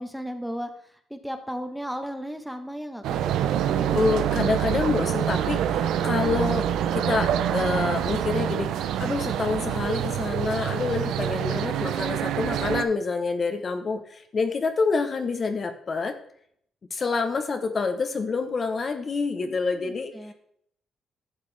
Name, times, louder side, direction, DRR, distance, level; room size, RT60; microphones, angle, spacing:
voice 1, 0.0-3.3 19.4-20.3, equal, ahead, 6 dB, 1.1 m, -35 dB
sound 1, 3.0-12.8, right 10 dB, 85° right, 0.5 m, -26 dB
voice 2, 3.9-8.7 9.0-16.2 16.9-20.1, left 4 dB, 40° left, 7 dB, 0.9 m, -27 dB
11.0 x 6.7 x 3.4 m, 0.67 s
cardioid pair, 90°, 0 cm